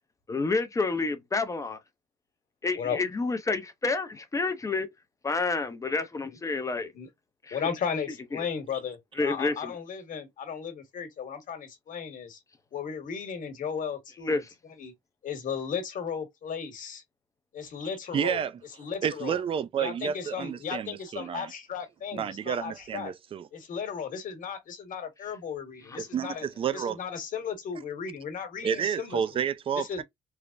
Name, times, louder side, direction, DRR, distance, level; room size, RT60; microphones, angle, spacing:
voice 1, 0.3-1.8 2.6-4.9 5.2-6.9 7.5-7.6 8.3-8.5 9.2-9.8 14.3-14.5 25.9-26.0, left 3 dB, 20° left, 0.5 m, -29 dB
voice 2, 7.5-12.4 12.7-14.4 14.8-14.9 15.2-17.0 17.5-18.4 18.8-19.4 19.8-23.1 23.5-26.5 26.7-29.2 29.8-30.0, left 7 dB, 50° left, 1.2 m, -35 dB
voice 3, 18.1-18.5 19.0-21.5 22.1-23.5 26.0-27.0 28.6-30.0, right 8 dB, 35° right, 0.3 m, -30 dB
3.2 x 2.0 x 2.4 m
cardioid pair, 110°, 17 cm